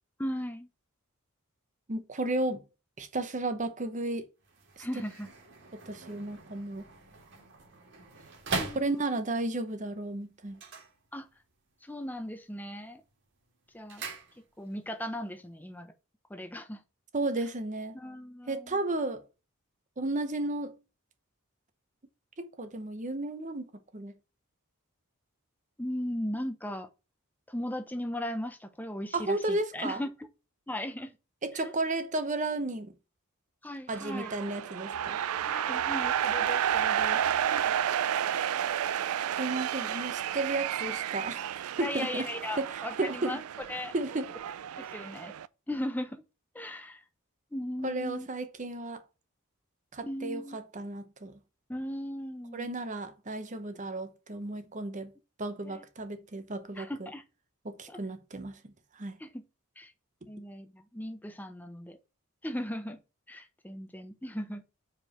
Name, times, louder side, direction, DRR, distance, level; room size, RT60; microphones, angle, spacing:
voice 1, 0.2-0.7 4.8-5.3 8.6-9.2 11.1-11.3 11.8-13.0 13.7-14.0 14.6-15.9 16.3-16.8 17.9-18.8 25.8-26.9 27.5-30.1 30.7-31.1 31.5-31.7 33.6-34.3 35.4-37.2 41.8-43.9 44.8-45.3 45.7-46.2 46.5-47.0 47.5-48.3 50.0-50.6 51.7-52.7 55.6-55.8 56.7-57.2 57.9-58.0 59.2-59.4 59.8-59.9 60.3-62.0 62.4-63.0 63.3-64.6, left 1 dB, 10° left, 0.7 m, -37 dB
voice 2, 1.9-2.6 3.0-4.2 5.9-6.9 8.7-10.6 17.1-18.0 18.5-19.2 20.0-20.8 22.4-23.7 23.9-24.1 29.1-30.0 31.4-32.9 33.9-35.2 37.5-37.7 39.4-42.3 42.6-43.4 43.9-44.3 47.8-49.0 49.9-51.4 52.5-55.1 55.4-57.1 57.6-58.5 59.0-59.2, right 2 dB, 35° right, 0.8 m, -33 dB
sound 1, 4.4-9.4 10.5-11.6 11.9-12.4 12.8-14.8 15.1-15.2, right 3 dB, 55° right, 1.9 m, -41 dB
sound 2, 33.9-45.5, right 9 dB, 80° right, 0.4 m, -31 dB
5.0 x 4.7 x 5.6 m
head